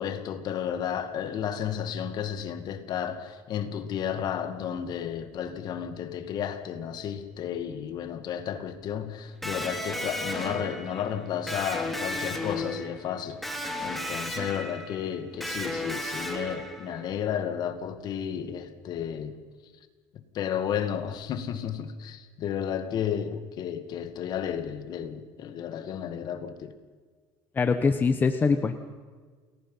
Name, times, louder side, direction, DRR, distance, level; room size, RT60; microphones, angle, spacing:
voice 1, 0.0-13.5 13.8-19.4 20.1-26.8, left 9 dB, 45° left, 2.1 m, -32 dB
Electric guitar, 9.4-17.1, left 1 dB, ahead, 3.0 m, -34 dB
voice 2, 27.5-28.7, left 5 dB, 20° left, 1.1 m, -23 dB
29.0 x 21.0 x 5.7 m
cardioid pair, 140°, 10 cm